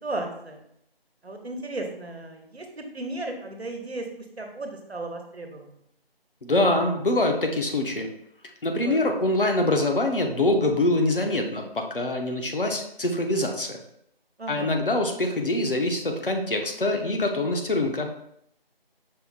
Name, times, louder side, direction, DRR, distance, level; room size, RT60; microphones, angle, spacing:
voice 1, 0.0-0.6 1.2-5.8 8.7-9.1 14.4-14.7, right 2 dB, 85° right, 3 dB, 1.0 m, -35 dB
voice 2, 6.4-8.1 8.6-13.8 14.5-18.1, left 2 dB, 60° left, 3 dB, 0.8 m, -24 dB
5.5 x 2.1 x 4.1 m, 0.73 s
figure-of-eight pair, 175°, 31 cm